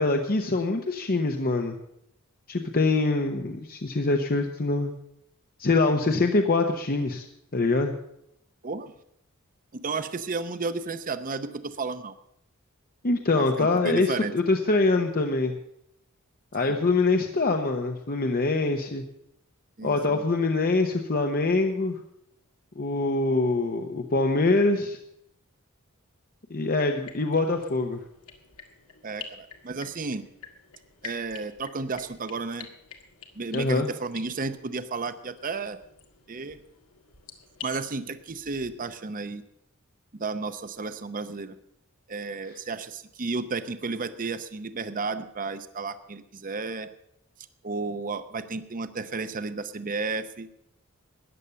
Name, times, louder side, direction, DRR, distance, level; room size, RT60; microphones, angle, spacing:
voice 1, 0.0-1.8 2.5-4.9 5.6-7.3 7.5-7.9 13.0-15.5 16.5-19.0 19.8-22.0 22.8-25.0 26.5-28.0 33.5-33.9, left 3 dB, 45° left, 4 dB, 0.9 m, -24 dB
voice 2, 9.7-12.1 13.3-14.3 16.6-16.7 19.8-20.2 29.0-30.3 31.0-32.7 33.4-35.8 36.3-36.6 37.6-39.4 40.2-41.5 42.1-46.9 47.6-50.5, right 4 dB, 40° right, 11 dB, 0.7 m, -33 dB
sound 1, 27.0-38.7, left 6 dB, 90° left, 1.9 m, -48 dB
14.0 x 9.9 x 6.8 m, 0.76 s
head